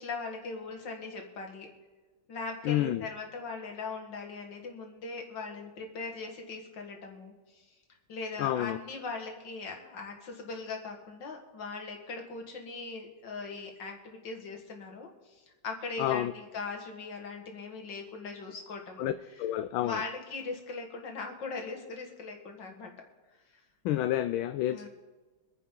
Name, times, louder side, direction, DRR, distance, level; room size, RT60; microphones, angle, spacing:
voice 1, 0.0-1.7 2.3-7.7 8.1-19.4 19.8-22.9 24.7-24.9, left 4 dB, 60° left, 2 dB, 2.4 m, -40 dB
voice 2, 2.6-3.1 8.4-8.8 16.0-16.3 19.0-19.1 19.4-20.0 23.8-24.9, left 13 dB, 80° left, 10 dB, 1.3 m, -29 dB
24.5 x 9.9 x 3.8 m, 1.3 s
omnidirectional pair, 2.2 m